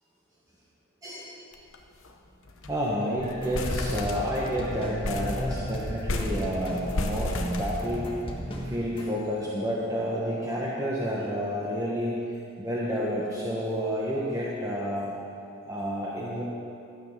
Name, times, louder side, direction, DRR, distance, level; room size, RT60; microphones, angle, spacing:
voice 1, 1.0-1.3 2.7-8.1 8.6-12.2 12.6-15.1 15.7-16.4, equal, 15° right, -5 dB, 1.1 m, -30 dB
sound 1, 1.5-1.8 2.0-2.1 2.5-2.8 3.2-4.6 5.0-8.3, left 2 dB, 60° left, 0.9 m, -32 dB
sound 2, 3.2-9.1, equal, 25° left, 1.5 m, -36 dB
12.5 x 8.7 x 5.9 m, 2.7 s
head